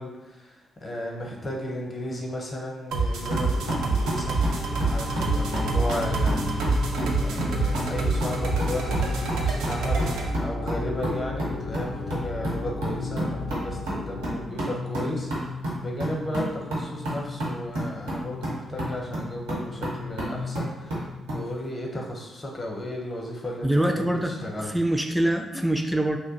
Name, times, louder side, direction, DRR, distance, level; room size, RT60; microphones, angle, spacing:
voice 1, 0.0-4.4 4.9-6.6 7.2-15.6 15.8-24.8, left 1 dB, 35° left, 0 dB, 0.8 m, -34 dB
sound 1, 2.9-10.3, right 4 dB, 70° right, 0.4 m, -27 dB
sound 2, 3.3-21.5, equal, 85° right, 0.8 m, -32 dB
sound 3, 3.6-14.4, left 2 dB, 75° left, 0.6 m, -34 dB
voice 2, 23.6-24.3 24.7-26.2, right 1 dB, ahead, 4 dB, 0.4 m, -24 dB
2.5 x 2.1 x 3.7 m, 1.1 s
hypercardioid pair, 40°, 0 cm